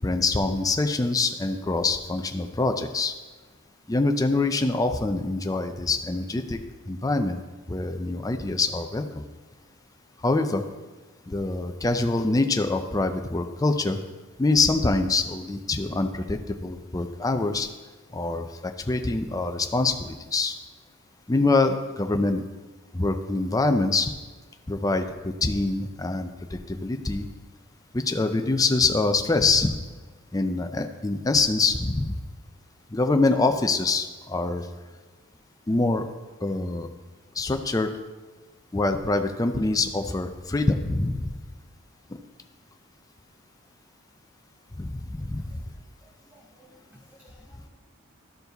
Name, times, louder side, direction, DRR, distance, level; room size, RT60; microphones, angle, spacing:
voice 1, 0.0-3.1 3.9-6.6 6.9-7.4 7.7-9.2 10.2-10.6 11.3-14.0 14.4-17.7 18.1-20.5 21.3-22.4 22.9-24.1 24.7-27.3 27.9-29.8 30.3-32.2 32.9-34.7 35.7-36.1 36.4-36.9 37.4-37.9 38.7-41.3 42.1-42.2 44.8-45.6, left 3 dB, 15° left, 7 dB, 0.4 m, -25 dB
voice 2, 46.0-47.7, equal, 10° right, -4 dB, 0.8 m, -56 dB
13.0 x 4.7 x 4.0 m, 1.3 s
head